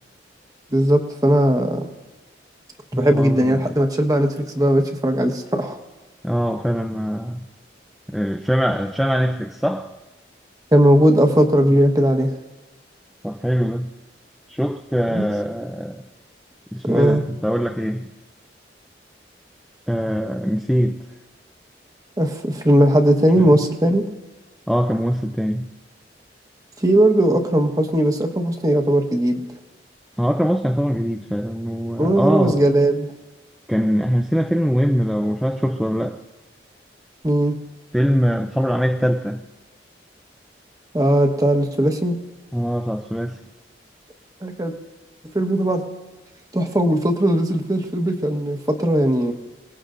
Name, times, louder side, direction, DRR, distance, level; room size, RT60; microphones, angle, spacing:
voice 1, 0.7-1.9 3.0-5.8 10.7-12.3 15.1-15.3 16.9-17.2 22.2-24.0 26.8-29.4 32.0-33.1 37.2-37.6 40.9-42.2 44.4-44.7 45.3-45.8 46.5-49.3, right 1 dB, 20° right, 1.3 m, -18 dB
voice 2, 2.9-3.7 6.2-7.4 8.1-9.9 13.2-13.9 14.5-16.0 16.7-18.1 19.9-21.0 23.4-23.5 24.7-25.7 30.2-32.6 33.7-36.2 37.9-39.4 42.5-43.4, equal, ahead, 0.5 m, -22 dB
27.5 x 19.0 x 2.6 m
head